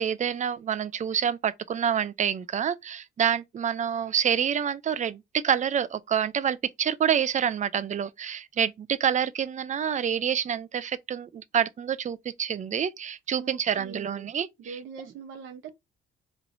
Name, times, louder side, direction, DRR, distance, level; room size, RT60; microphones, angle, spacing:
voice 1, 0.0-14.5, right 8 dB, 40° right, 0.5 m, -27 dB
voice 2, 13.4-14.3 14.6-15.7, right 6 dB, 75° right, 0.9 m, -42 dB
4.4 x 3.0 x 2.6 m
cardioid pair, 90°, 20 cm